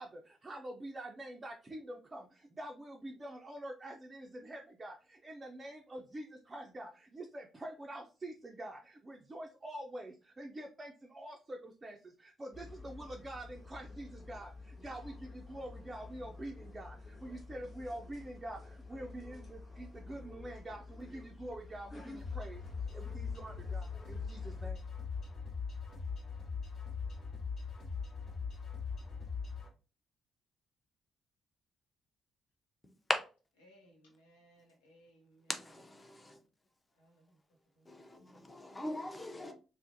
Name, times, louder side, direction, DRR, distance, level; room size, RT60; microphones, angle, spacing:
voice 1, 0.0-24.8, right 1 dB, 30° right, 0.4 m, -46 dB
sound 1, 12.5-24.7, left 3 dB, 40° left, 1.0 m, -50 dB
sound 2, 22.2-29.7, left 5 dB, 55° left, 1.2 m, -40 dB
voice 2, 33.6-35.5 37.0-37.4 37.8-38.1, equal, 80° left, 0.7 m, -64 dB
voice 3, 35.5-36.4 37.9-39.5, left 1 dB, 25° left, 0.6 m, -43 dB
2.5 x 2.0 x 2.6 m
figure-of-eight pair, 40°, 0 cm